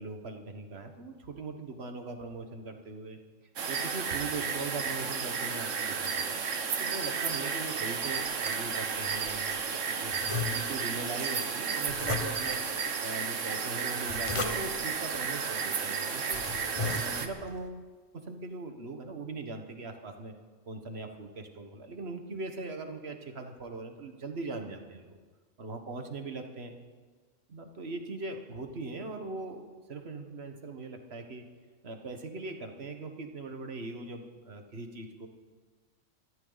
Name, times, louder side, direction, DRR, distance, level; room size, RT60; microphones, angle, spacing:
voice 1, 0.0-3.2 3.7-6.4 6.8-9.6 9.9-10.1 10.4-12.6 13.0-16.4 17.0-17.8 18.3-20.3 20.7-25.2 25.6-26.7 27.5-29.6 29.9-31.4 31.8-35.3, right 3 dB, 55° right, 5 dB, 1.6 m, -40 dB
sound 1, 3.6-17.3, right 6 dB, 70° right, 1.4 m, -33 dB
sound 2, 8.0-9.6 10.1-11.0 11.9-12.7 13.8-14.9 15.7-15.8 16.2-17.5, left 3 dB, 25° left, 1.1 m, -37 dB
23.0 x 14.0 x 4.1 m, 1.4 s
omnidirectional pair, 1.4 m